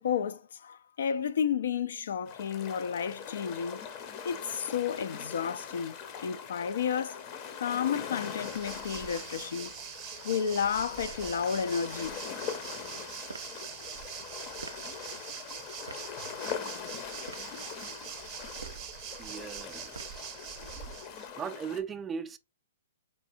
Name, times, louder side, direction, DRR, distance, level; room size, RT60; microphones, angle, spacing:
voice 1, 0.0-3.8 4.2-6.0 6.2-7.2 7.6-9.7 10.2-12.2, left 7 dB, 65° left, 0.3 m, -31 dB
sound 1, 2.3-21.8, left 7 dB, 35° left, 0.7 m, -42 dB
Waves surf, 8.0-21.3, right 9 dB, 35° right, 0.7 m, -44 dB
sound 2, 13.3-13.5 14.6-14.9 15.9-16.1 17.1-17.5 18.5-18.9 19.9-20.3, right 3 dB, 85° right, 0.4 m, -45 dB
voice 2, 19.2-20.5 21.4-22.4, right 6 dB, 15° right, 0.3 m, -38 dB
4.4 x 2.7 x 2.5 m
hypercardioid pair, 120°, 0 cm